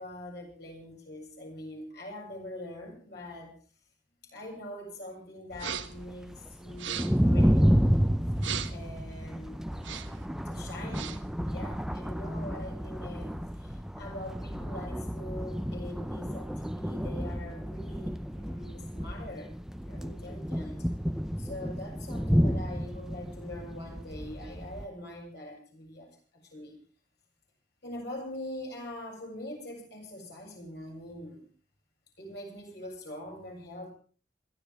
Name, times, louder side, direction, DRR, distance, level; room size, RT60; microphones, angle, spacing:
voice 1, 0.0-3.6 4.2-8.0 8.7-9.7 10.5-11.2 11.5-19.5 19.9-20.9 21.4-26.1 26.4-26.8 27.8-31.5 32.2-33.9, left 1 dB, 60° left, 0 dB, 7.4 m, -43 dB
sound 1, 5.5-24.9, equal, 5° right, 0.7 m, -30 dB
sound 2, 5.5-6.1 6.7-7.3 8.4-8.9 9.7-10.3 10.8-11.3, right 8 dB, 90° right, 1.3 m, -38 dB
27.0 x 12.5 x 3.6 m, 0.39 s
head